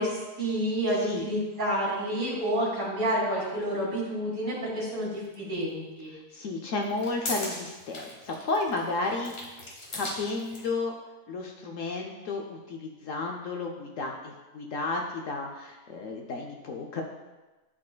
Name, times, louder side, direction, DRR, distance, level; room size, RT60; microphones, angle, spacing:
voice 1, 0.0-6.1, equal, 75° right, -5 dB, 2.6 m, -29 dB
sound 1, 5.3-5.4 6.7-10.7, left 2 dB, 40° left, 1.4 m, -39 dB
voice 2, 6.1-9.3 9.9-10.9 11.3-17.0, left 3 dB, 65° left, 1 dB, 0.8 m, -32 dB
10.5 x 4.1 x 2.2 m, 1.2 s
omnidirectional pair, 1.7 m